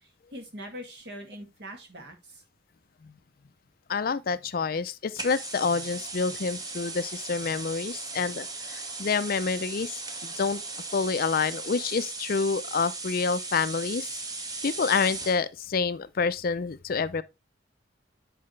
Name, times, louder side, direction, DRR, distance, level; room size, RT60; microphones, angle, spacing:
voice 1, 0.3-2.4, equal, 60° right, 2.2 m, -42 dB
voice 2, 3.9-10.6 10.9-14.2 14.6-17.2, left 5 dB, 50° left, 0.5 m, -28 dB
sound 1, 5.2-15.4, right 3 dB, 20° right, 0.9 m, -37 dB
8.6 x 4.9 x 3.2 m
head